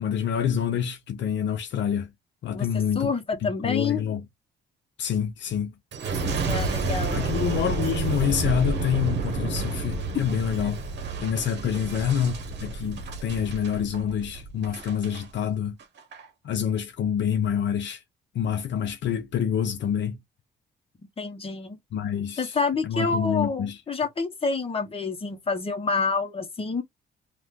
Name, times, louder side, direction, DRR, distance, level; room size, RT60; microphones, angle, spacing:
voice 1, 0.0-2.1 2.4-3.1 3.4-4.2 5.0-5.7 7.1-10.8 11.2-15.8 16.4-18.0 18.3-20.2 21.9-22.6 22.8-23.8, left 8 dB, 65° left, 0.7 m, -27 dB
voice 2, 2.5-4.0 6.5-7.2 21.2-21.8 22.4-26.8, left 4 dB, 30° left, 1.0 m, -28 dB
Boom, 5.9-15.2 15.8-16.2, right 3 dB, 60° right, 1.0 m, -30 dB
2.7 x 2.5 x 3.6 m
cardioid pair, 90°, 20 cm